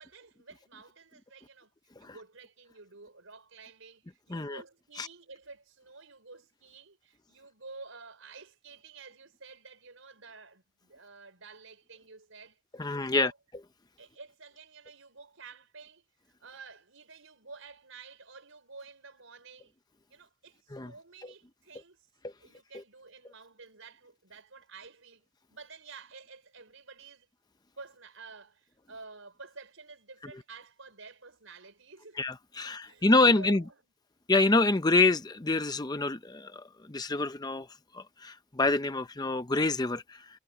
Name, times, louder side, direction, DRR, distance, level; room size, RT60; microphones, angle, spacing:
voice 1, 0.0-1.7 2.0-13.4 14.0-16.0 16.4-19.7 20.1-22.0 22.4-27.3 27.8-32.2 32.6-33.9, right 4 dB, 70° right, 5.0 m, -50 dB
voice 2, 4.3-4.6 5.0-5.1 12.8-13.3 20.7-20.9 21.2-21.3 22.2-22.3 32.2-33.6 34.3-37.7 37.9-40.3, left 3 dB, 20° left, 0.6 m, -27 dB
head